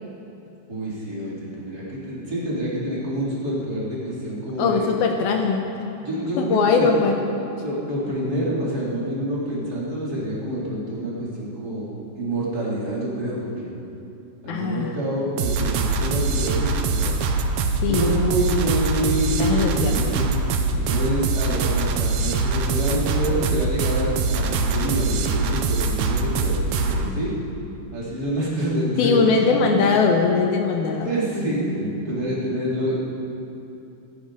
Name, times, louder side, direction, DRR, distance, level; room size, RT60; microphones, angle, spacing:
voice 1, 0.7-4.9 6.0-6.9 7.6-13.7 14.4-17.2 17.9-20.3 20.8-27.3 27.9-29.7 31.0-32.9, right 1 dB, 20° right, -7 dB, 3.7 m, -27 dB
voice 2, 4.6-5.7 6.4-7.2 14.5-14.9 17.8-18.0 18.7-18.8 19.4-19.9 27.1-27.2 29.0-31.2, left 5 dB, 75° left, 2 dB, 2.3 m, -21 dB
sound 1, 15.4-27.1, right 3 dB, 85° right, 2.0 m, -23 dB
27.0 x 10.5 x 5.1 m, 2.8 s
omnidirectional pair, 5.6 m